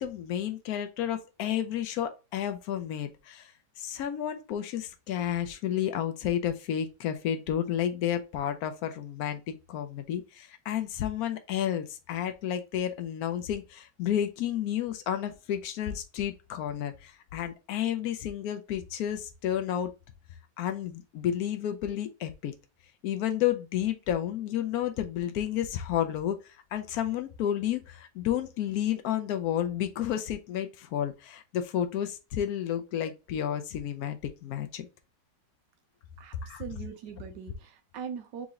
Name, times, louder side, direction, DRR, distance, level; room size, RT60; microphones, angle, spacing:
voice 1, 0.0-19.9 20.6-22.5 23.0-34.9 36.4-36.6, left 10 dB, 85° left, 0.8 m, -31 dB
voice 2, 36.2-38.5, right 7 dB, 70° right, 1.2 m, -41 dB
3.7 x 3.0 x 3.6 m
omnidirectional pair, 2.1 m